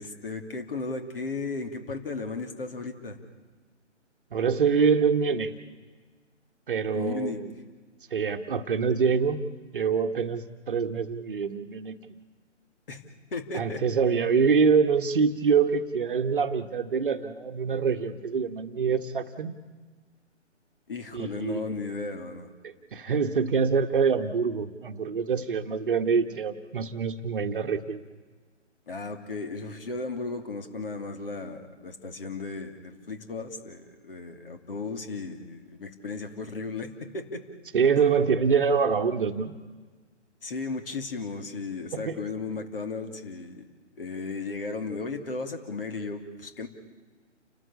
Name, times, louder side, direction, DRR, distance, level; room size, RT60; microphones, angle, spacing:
voice 1, 0.0-3.2 6.9-7.4 12.9-13.0 13.3-13.8 20.9-22.5 28.9-37.4 40.4-43.7 44.0-46.7, left 3 dB, 50° left, 6 dB, 2.8 m, -35 dB
voice 2, 4.3-5.5 6.7-7.3 8.1-9.4 9.7-12.0 13.5-19.6 21.1-21.7 22.6-28.0 37.7-39.5 41.9-42.1, right 5 dB, 45° right, 7 dB, 1.3 m, -25 dB
29.5 x 12.5 x 8.5 m, 1.4 s
figure-of-eight pair, 145°, 36 cm